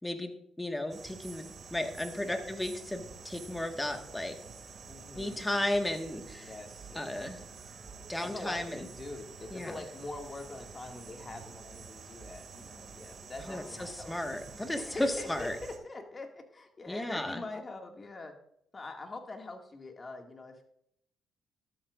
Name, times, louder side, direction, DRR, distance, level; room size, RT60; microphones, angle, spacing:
voice 1, 0.0-4.3 5.1-6.5 6.9-7.4 8.1-8.8 9.5-9.7 13.4-15.6 16.9-17.4, left 1 dB, 10° left, 5 dB, 1.6 m, -34 dB
sound 1, 0.9-15.8, right 5 dB, 50° right, 2.4 m, -48 dB
voice 2, 4.9-5.4 6.4-7.2 8.2-14.1 14.8-18.3 18.7-20.6, left 2 dB, 30° left, 3 dB, 2.2 m, -44 dB
13.0 x 12.0 x 2.6 m, 0.72 s
cardioid pair, 90°, 0 cm